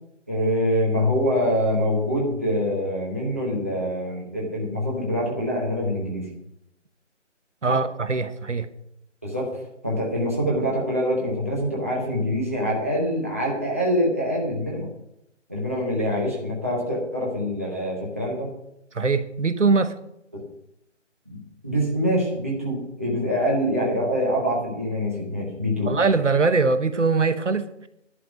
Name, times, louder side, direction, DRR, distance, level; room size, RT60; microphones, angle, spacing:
voice 1, 0.3-6.3 7.7-7.8 9.2-14.9 15.5-18.5 20.3-20.4 21.3-21.4 21.6-25.9, equal, 10° right, -5 dB, 1.0 m, -25 dB
voice 2, 7.6-8.7 18.9-19.9 25.9-27.9, right 4 dB, 75° right, 12 dB, 1.2 m, -22 dB
11.0 x 5.8 x 8.9 m, 0.80 s
figure-of-eight pair, 175°, 37 cm